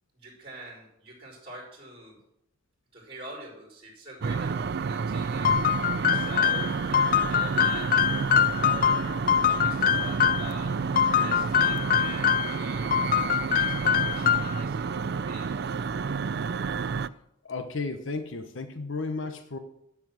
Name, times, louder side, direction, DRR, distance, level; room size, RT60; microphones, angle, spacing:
voice 1, 0.1-2.2 2.9-5.5 6.0-8.1 8.4-15.6, right 2 dB, 30° right, -1 dB, 4.3 m, -45 dB
sound 1, 4.2-17.1, right 5 dB, 55° right, 0.4 m, -30 dB
sound 2, 5.4-10.5 11.0-12.6 12.9-14.6, left 9 dB, 45° left, 0.3 m, -24 dB
voice 2, 17.4-19.6, left 3 dB, 70° left, 8 dB, 1.0 m, -33 dB
12.0 x 6.1 x 7.6 m, 0.76 s
head